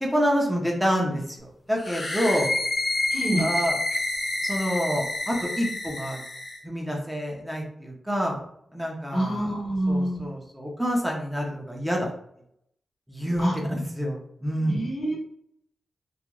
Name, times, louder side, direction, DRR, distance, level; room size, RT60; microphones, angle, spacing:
voice 1, 0.0-2.5 3.4-3.8 4.4-6.2 6.6-8.4 8.7-9.5 9.9-12.1 13.1-14.9, equal, 5° right, -1 dB, 0.5 m, -27 dB
sound 1, 1.8-6.6, left 2 dB, 35° left, 0.6 m, -28 dB
voice 2, 3.1-3.5 9.1-10.2 13.4-13.6 14.7-15.2, right 1 dB, 75° left, -2 dB, 1.0 m, -26 dB
2.4 x 2.1 x 2.9 m, 0.71 s
wide cardioid pair, 125°, 0 cm